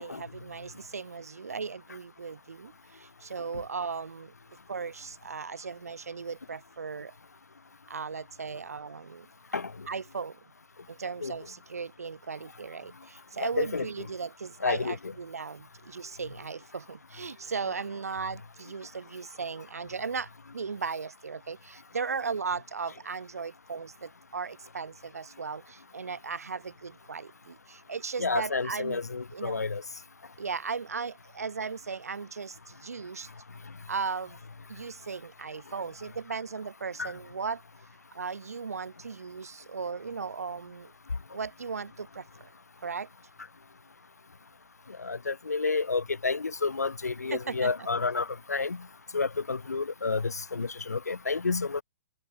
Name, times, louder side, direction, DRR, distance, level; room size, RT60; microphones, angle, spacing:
voice 1, 0.0-4.3 4.7-7.1 7.9-9.3 9.9-10.4 10.9-29.0 29.3-29.6 30.4-33.3 33.9-34.4 34.7-37.6 38.1-40.9 41.3-42.5 42.8-43.1 47.3-47.7, right 5 dB, 70° right, 0.8 m, -37 dB
voice 2, 9.5-9.9 11.2-11.3 13.4-13.9 14.6-15.1 28.2-29.8 37.0-37.1 45.0-48.9 49.1-51.8, left 4 dB, 80° left, 0.5 m, -30 dB
figure-of-eight pair, 120°, 9 cm